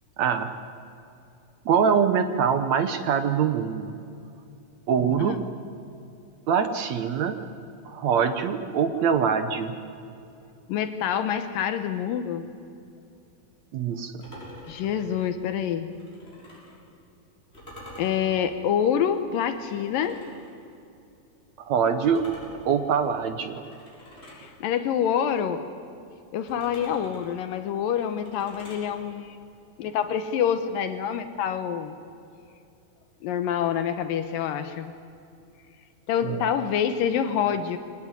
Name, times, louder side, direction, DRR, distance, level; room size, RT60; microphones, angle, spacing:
voice 1, 0.2-0.5 1.7-4.0 4.9-5.4 6.5-7.4 7.9-9.8 13.7-14.2 21.7-23.6 36.2-36.5, right 7 dB, 70° right, 9 dB, 1.8 m, -24 dB
voice 2, 10.7-12.5 14.7-15.9 18.0-20.2 24.3-25.7 26.3-29.4 29.8-32.0 33.2-34.9 36.1-37.8, left 8 dB, 75° left, 9 dB, 2.5 m, -26 dB
sound 1, 14.2-16.8 17.5-20.5 22.0-24.5 26.5-28.9, left 1 dB, 15° left, 6.5 m, -47 dB
24.0 x 18.5 x 9.6 m, 2.7 s
omnidirectional pair, 4.2 m